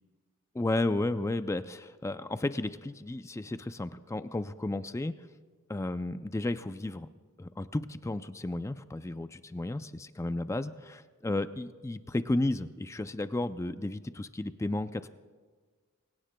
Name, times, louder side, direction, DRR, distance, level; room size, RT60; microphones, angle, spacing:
voice 1, 0.5-5.1 5.7-7.1 7.4-15.1, left 2 dB, 15° left, 11 dB, 0.4 m, -33 dB
23.5 x 17.5 x 2.2 m, 1.5 s
head